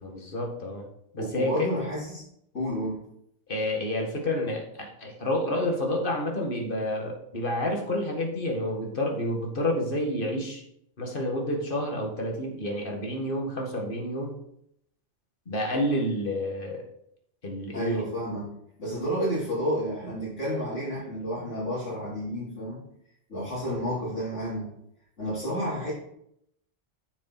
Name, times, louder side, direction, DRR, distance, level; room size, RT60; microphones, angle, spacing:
voice 1, 0.0-0.9 1.1-1.7 3.5-10.6 11.0-14.4 15.5-16.8 17.4-18.0, left 1 dB, 45° left, 1 dB, 2.1 m, -29 dB
voice 2, 1.2-2.2 2.5-3.0 17.7-18.5 18.8-22.8 23.3-24.7 25.2-25.9, equal, 75° left, -11 dB, 4.1 m, -30 dB
8.5 x 7.3 x 4.2 m, 0.73 s
omnidirectional pair, 1.2 m